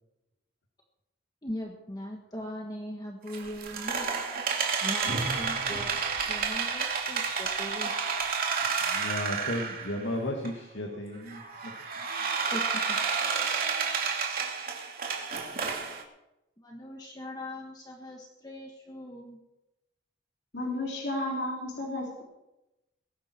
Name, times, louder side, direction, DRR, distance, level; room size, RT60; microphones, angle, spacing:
voice 1, 1.4-4.1 4.8-5.9 6.3-7.9 12.5-13.1 16.6-19.4, left 1 dB, 20° left, 0 dB, 1.7 m, -40 dB
sound 1, 3.3-10.0 10.4-10.5 11.3-16.0, right 5 dB, 50° right, 2.7 m, -30 dB
voice 2, 8.9-11.7, left 1 dB, 85° left, 2 dB, 2.0 m, -34 dB
voice 3, 20.5-22.2, left 1 dB, 60° left, -3 dB, 3.5 m, -32 dB
21.0 x 11.5 x 4.6 m, 0.93 s
head